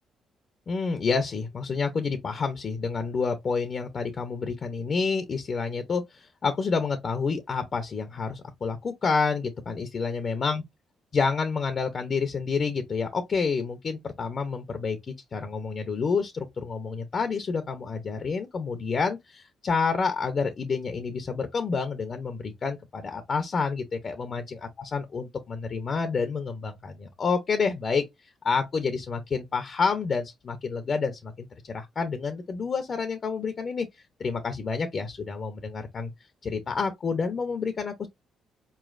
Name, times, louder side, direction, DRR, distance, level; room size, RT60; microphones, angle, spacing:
voice 1, 0.7-10.6 11.1-15.0 15.3-28.0 28.4-33.9 34.2-36.1 36.4-38.1, left 5 dB, 45° left, 0.6 m, -29 dB
4.2 x 3.1 x 2.4 m
cardioid pair, 90°, 0 cm